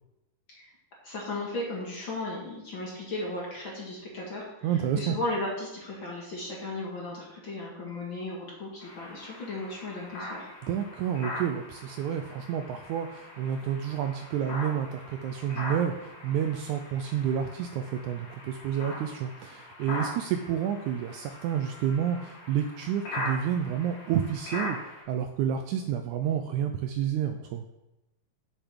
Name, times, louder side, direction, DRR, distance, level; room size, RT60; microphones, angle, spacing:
voice 1, 1.0-10.5, left 2 dB, 45° left, -3 dB, 2.1 m, -36 dB
voice 2, 4.6-5.2 10.6-27.6, right 9 dB, 80° right, 6 dB, 1.8 m, -30 dB
sound 1, 8.8-25.0, left 2 dB, 75° left, 3.9 m, -41 dB
8.1 x 6.5 x 6.1 m, 0.98 s
omnidirectional pair, 3.8 m